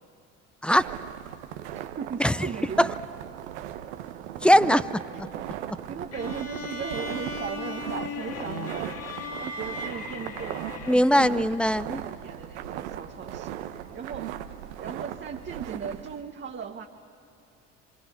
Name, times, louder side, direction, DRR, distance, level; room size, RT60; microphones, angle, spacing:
sound 1, 0.7-16.2, right 11 dB, 80° right, 1.0 m, -38 dB
voice 1, 1.7-2.9 5.3-5.4 5.9-9.0 9.4-10.6 10.9-11.5 11.9-14.3 14.8-16.9, right 6 dB, 30° right, 3 dB, 1.1 m, -37 dB
voice 2, 4.4-5.0 10.9-12.0, equal, 5° left, 16 dB, 0.6 m, -20 dB
sound 2, 6.1-11.4, left 3 dB, 45° left, 1.9 m, -37 dB
26.5 x 25.5 x 6.0 m, 2.6 s
hypercardioid pair, 65°, 34 cm